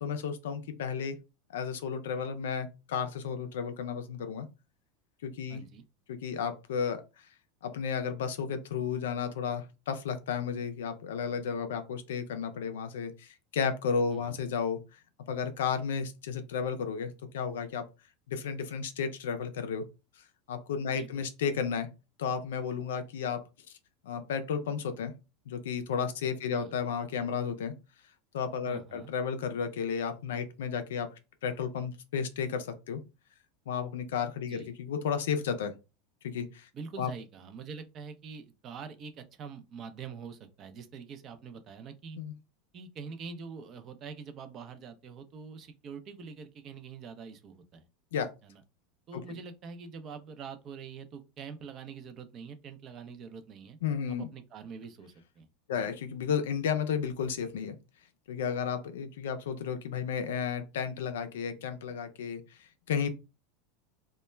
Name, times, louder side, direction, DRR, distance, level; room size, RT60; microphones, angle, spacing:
voice 1, 0.0-1.2 1.5-4.5 5.2-5.6 6.1-7.0 7.6-15.0 15.3-17.9 18.3-19.8 20.5-21.9 22.2-23.4 24.0-25.1 25.5-27.7 28.3-31.1 31.4-33.0 33.7-35.7 36.2-36.7 37.0-37.1 42.2-42.3 48.1-48.3 49.1-49.2 53.8-54.3 55.7-57.8 58.3-62.4 62.9-63.1, left 6 dB, 80° left, 0.4 m, -33 dB
voice 2, 5.5-5.8 14.1-14.4 20.9-21.2 26.5-26.7 28.7-29.1 34.4-34.7 36.7-42.2 42.7-47.9 48.4-48.6 49.1-53.8 54.1-55.5 55.7-55.9, right 5 dB, 40° right, 0.5 m, -45 dB
2.2 x 2.1 x 3.1 m
hypercardioid pair, 100°, 0 cm